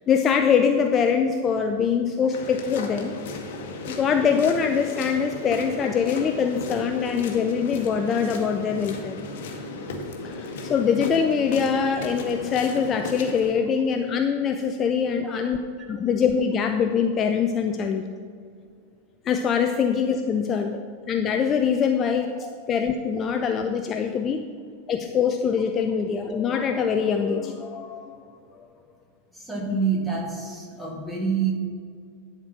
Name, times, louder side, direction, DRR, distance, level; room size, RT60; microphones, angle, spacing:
voice 1, 0.1-3.1 3.8-9.2 10.2-15.6 15.9-18.0 19.2-20.8 21.1-24.4 24.9-28.2 28.6-28.7, left 6 dB, 25° left, 5 dB, 0.5 m, -23 dB
sound 1, 2.3-13.5, left 3 dB, 55° left, 1.1 m, -35 dB
voice 2, 29.3-31.5, right 5 dB, 10° right, -2 dB, 2.1 m, -27 dB
10.5 x 4.4 x 6.1 m, 2.1 s
figure-of-eight pair, 90°, 0 cm